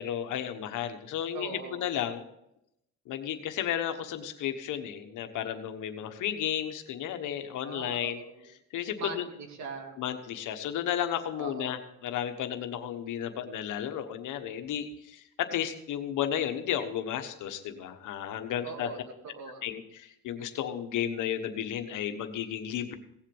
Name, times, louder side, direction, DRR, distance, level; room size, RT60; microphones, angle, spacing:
voice 1, 0.0-2.2 3.1-8.2 8.7-9.2 10.0-18.9 19.6-23.0, left 10 dB, 85° left, 8 dB, 1.3 m, -33 dB
voice 2, 1.3-1.8 7.6-8.5 9.0-10.0 11.4-11.9 18.6-19.0 19.2-19.7, right 4 dB, 65° right, 5 dB, 2.2 m, -41 dB
17.0 x 7.4 x 5.4 m, 0.82 s
cardioid pair, 90°, 30 cm